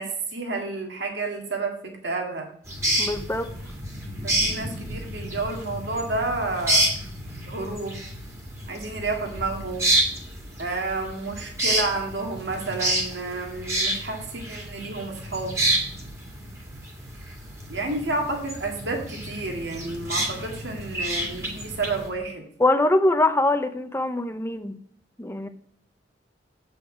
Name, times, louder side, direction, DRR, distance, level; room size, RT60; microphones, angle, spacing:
voice 1, 0.0-2.5 4.2-6.9 7.5-8.0 8.7-9.9 10.6-15.6 17.7-22.5, right 3 dB, 65° right, 2 dB, 2.0 m, -30 dB
sound 1, 2.7-22.1, right 1 dB, 15° right, 2.1 m, -29 dB
voice 2, 3.0-3.5 22.6-24.8 25.2-25.5, left 2 dB, 15° left, 9 dB, 0.7 m, -23 dB
8.3 x 5.5 x 6.1 m, 0.64 s
head